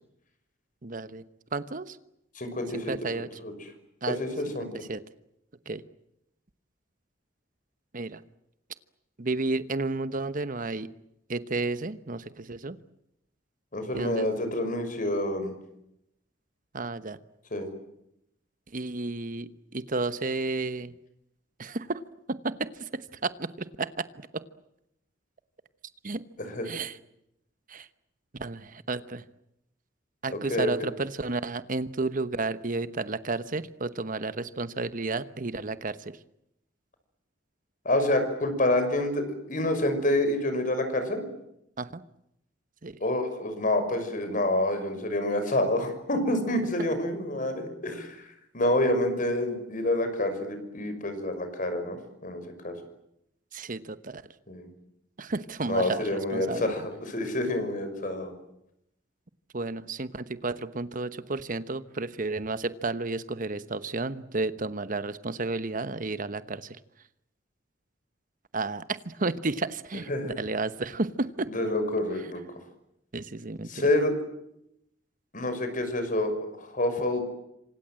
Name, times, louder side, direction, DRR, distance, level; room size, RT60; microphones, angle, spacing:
voice 1, 0.8-1.2 1.5-2.0 2.9-3.3 4.0-4.2 4.6-5.0 5.7-5.8 7.9-8.2 9.2-10.9 11.3-12.8 13.9-14.3 16.7-17.2 18.7-20.9 21.6-22.0 22.3-24.4 26.0-26.2 26.6-27.0 27.7-27.9 28.3-29.2 30.2-36.2 41.8-42.0 42.8-43.0 46.8-46.9 53.5-54.2 55.2-56.8 59.5-66.8 68.5-70.1 70.4-71.5 73.1-73.8, right 3 dB, 45° right, 13 dB, 1.1 m, -32 dB
voice 2, 2.3-2.9 3.4-3.5 4.1-4.7 13.7-15.6 17.5-17.7 26.4-26.7 30.3-30.7 37.8-41.2 43.0-52.8 54.5-54.7 55.7-58.3 70.1-70.3 71.5-72.6 73.7-74.1 75.3-77.3, left 1 dB, 45° left, 8 dB, 6.0 m, -28 dB
28.0 x 26.0 x 7.7 m, 0.81 s
head